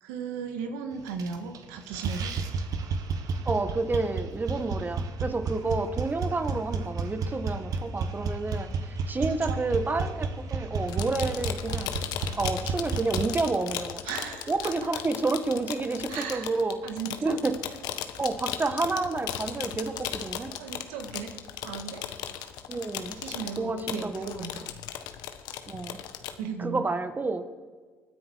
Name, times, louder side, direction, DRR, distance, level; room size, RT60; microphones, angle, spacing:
voice 1, 0.0-2.3 9.3-9.6 14.0-14.7 16.1-16.5 16.8-17.4 20.6-21.3 21.6-22.1 23.1-24.6 26.4-26.8, right 6 dB, 85° right, 5 dB, 1.8 m, -36 dB
sound 1, 1.1-1.6 1.9-13.2, right 4 dB, 60° right, 1.6 m, -32 dB
voice 2, 3.5-11.9 12.4-14.0 14.5-16.8 17.2-17.5 18.2-20.5 22.7-23.2 23.6-24.5 25.7-26.0 26.6-27.4, right 3 dB, 25° right, 9 dB, 1.7 m, -29 dB
sound 2, 10.9-26.4, left 10 dB, 75° left, 1.2 m, -37 dB
25.0 x 9.7 x 4.8 m, 1.4 s
supercardioid pair, 70°, 7 cm